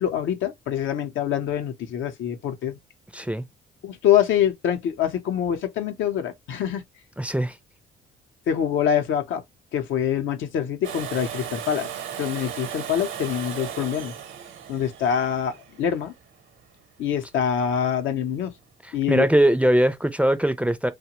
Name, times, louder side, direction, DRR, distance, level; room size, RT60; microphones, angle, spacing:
voice 1, 0.0-2.8 3.8-6.8 8.5-9.4 9.7-11.9 12.2-14.1 14.7-16.1 17.0-18.5 18.9-19.3, left 9 dB, 80° left, 0.6 m, -25 dB
voice 2, 3.1-3.4 7.2-7.5 19.1-20.9, right 1 dB, 5° right, 0.4 m, -21 dB
Domestic sounds home sounds, 10.8-16.6 18.6-18.7, right 9 dB, 75° right, 0.8 m, -36 dB
2.9 x 2.2 x 2.8 m
cardioid pair, 90°, 20 cm